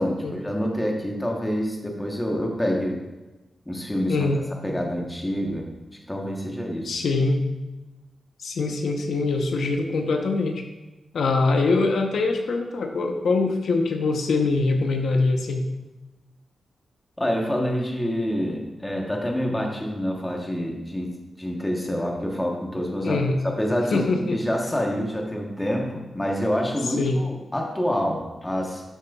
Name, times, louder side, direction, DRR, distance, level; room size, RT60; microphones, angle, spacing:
voice 1, 0.0-3.0 3.7-5.7 6.1-7.0 17.2-28.8, equal, 10° left, 0 dB, 1.1 m, -27 dB
voice 2, 4.1-4.4 6.8-7.5 8.4-10.6 11.1-15.7 23.0-23.4 23.9-24.4 26.8-27.2, left 3 dB, 70° left, 3 dB, 0.8 m, -23 dB
12.0 x 6.9 x 2.4 m, 1.1 s
wide cardioid pair, 175°, 0 cm